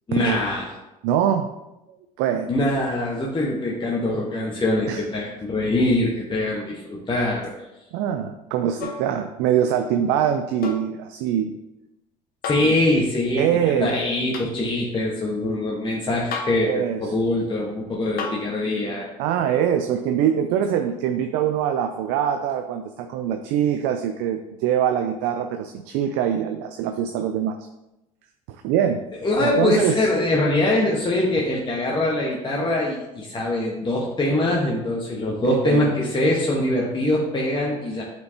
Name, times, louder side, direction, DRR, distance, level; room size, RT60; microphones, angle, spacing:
voice 1, 0.1-0.8 2.5-7.5 12.5-19.1 29.2-38.0, left 2 dB, 25° left, -3 dB, 1.3 m, -23 dB
voice 2, 1.0-1.5 2.2-2.5 4.9-5.0 7.9-11.6 12.6-12.7 13.3-14.0 16.7-17.1 19.2-27.6 28.5-29.0 29.4-30.0 35.4-36.0, right 9 dB, 70° right, 7 dB, 0.5 m, -23 dB
sound 1, 8.8-9.1 10.6-10.9 12.4-12.8 14.3-14.5 16.3-16.7 18.2-18.5 20.2-20.3, left 4 dB, 50° left, 1.0 m, -31 dB
8.3 x 4.5 x 2.9 m, 0.95 s
hypercardioid pair, 65°, 19 cm